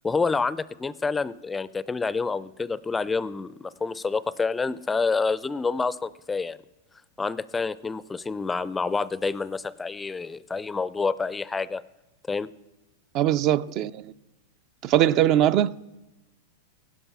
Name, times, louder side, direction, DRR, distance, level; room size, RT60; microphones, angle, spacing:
voice 1, 0.0-6.6 7.2-11.8 12.3-12.5, left 4 dB, 10° left, 0.4 m, -28 dB
voice 2, 13.1-14.1 14.8-15.7, right 12 dB, 40° right, 0.4 m, -21 dB
16.5 x 11.0 x 7.2 m
hypercardioid pair, 125°, 0 cm